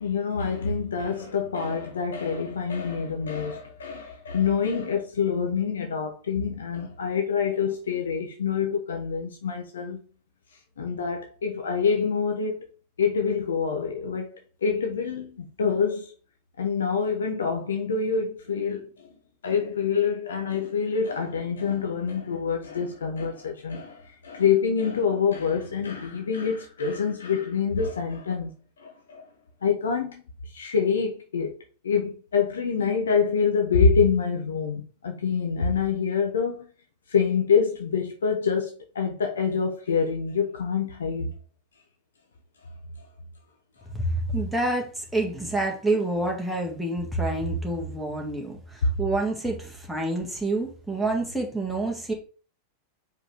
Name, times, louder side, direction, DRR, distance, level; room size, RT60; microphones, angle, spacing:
voice 1, 0.0-10.0 10.5-12.7 13.0-16.1 16.6-19.1 19.4-28.5 28.8-29.3 29.6-36.7 37.1-41.3 43.8-43.9 48.8-48.9, left 6 dB, 65° left, 1.0 m, -26 dB
voice 2, 43.9-52.1, right 2 dB, ahead, 2.0 m, -28 dB
5.1 x 4.6 x 5.0 m
figure-of-eight pair, 90°, 0 cm